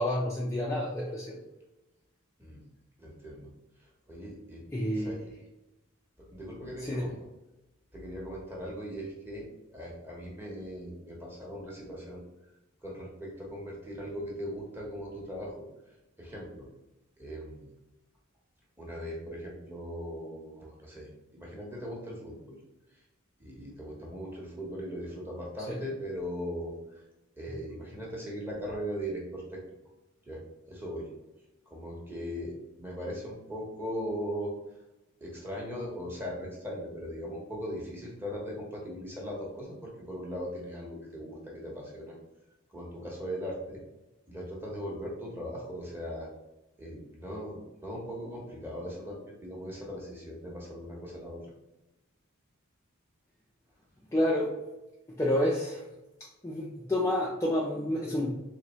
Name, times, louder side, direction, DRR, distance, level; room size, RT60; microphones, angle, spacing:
voice 1, 0.0-1.4 4.7-5.2 6.8-7.1 25.7-25.8 54.1-54.6 55.2-55.9 56.2-58.3, left 1 dB, 15° left, -4 dB, 0.4 m, -29 dB
voice 2, 3.0-3.5 4.1-4.7 4.9-5.3 6.2-7.1 7.9-12.2 12.8-15.7 16.2-16.7 17.2-17.7 18.8-22.6 23.4-27.0 27.4-29.6 30.3-30.4 30.7-31.1 31.7-34.5 35.2-42.1 42.7-43.8 44.3-46.3 46.8-51.5, equal, 10° right, -3 dB, 1.0 m, -39 dB
4.0 x 3.1 x 3.0 m, 1.0 s
head